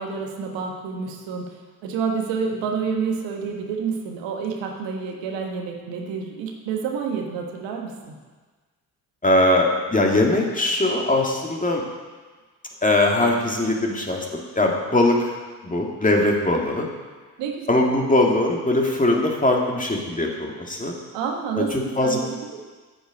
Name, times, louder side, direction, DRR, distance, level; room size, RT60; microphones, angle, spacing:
voice 1, 0.0-8.1 17.4-17.9 21.1-22.6, right 5 dB, 75° right, 2 dB, 1.3 m, -29 dB
voice 2, 9.2-11.8 12.8-15.2 15.6-16.9 17.7-20.9 21.6-21.7 22.0-22.2, left 1 dB, 15° left, 0 dB, 2.2 m, -21 dB
8.8 x 7.6 x 5.2 m, 1.4 s
hypercardioid pair, 45°, 45 cm